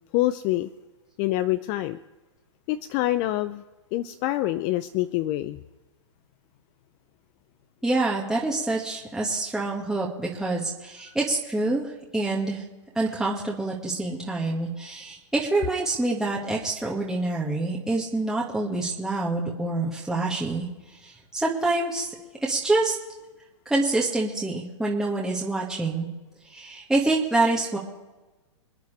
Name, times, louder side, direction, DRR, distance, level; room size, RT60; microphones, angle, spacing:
voice 1, 0.1-0.7 1.2-2.0 2.7-3.6 3.9-5.6 11.1-11.2, left 15 dB, 35° left, 14 dB, 0.5 m, -26 dB
voice 2, 7.8-12.6 13.0-22.2 22.4-23.0 23.7-26.1 26.4-27.8, right 2 dB, 5° right, -4 dB, 1.8 m, -26 dB
27.0 x 9.3 x 3.4 m, 1.2 s
hypercardioid pair, 120°, 16 cm